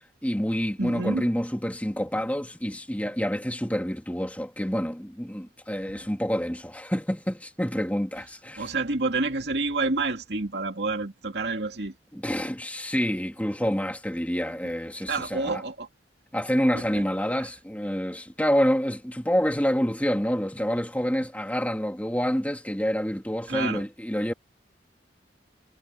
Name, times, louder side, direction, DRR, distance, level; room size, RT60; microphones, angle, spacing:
voice 1, 0.2-8.7 12.1-15.6 16.3-24.3, equal, 10° left, 2.4 m, -27 dB
voice 2, 0.8-1.3 8.6-11.9 15.1-15.9 16.7-17.0 23.5-23.8, right 3 dB, 70° right, 2.6 m, -28 dB
head